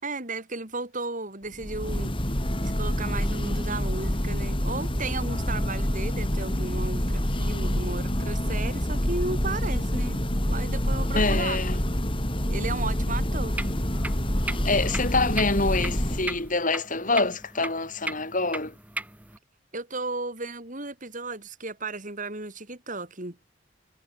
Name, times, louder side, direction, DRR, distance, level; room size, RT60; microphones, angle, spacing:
voice 1, 0.0-2.1 2.6-10.2 10.5-11.6 12.5-13.6 19.7-23.4, right 3 dB, 40° right, 4.8 m, -34 dB
Church bell, 1.5-16.5, equal, 25° left, 5.6 m, -27 dB
voice 2, 11.1-11.8 14.6-18.7, left 3 dB, 40° left, 4.3 m, -26 dB
sound 1, 13.5-19.4, right 2 dB, 10° right, 5.3 m, -38 dB
head